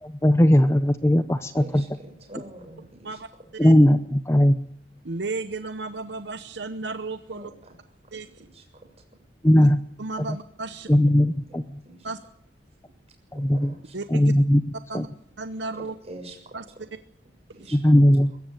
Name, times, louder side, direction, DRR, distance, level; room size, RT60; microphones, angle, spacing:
voice 1, 0.0-1.9 3.6-4.6 9.4-9.8 10.9-11.8 13.3-13.7 14.1-14.6 14.9-15.0 17.7-18.3, equal, 15° left, 11 dB, 0.7 m, -18 dB
voice 2, 1.5-3.2 7.3-8.0 8.4-8.9 10.7-11.1 11.8-12.1 13.3-13.9 15.7-16.8 17.5-17.8, right 1 dB, 35° right, 3 dB, 6.7 m, -45 dB
voice 3, 5.0-7.5 8.1-8.3 9.6-9.7 10.0-10.9 12.0-12.2 13.9-14.3 14.9-15.1 15.4-15.9 16.5-16.6, right 3 dB, 65° right, 10 dB, 0.9 m, -33 dB
22.5 x 14.0 x 9.2 m, 0.76 s
head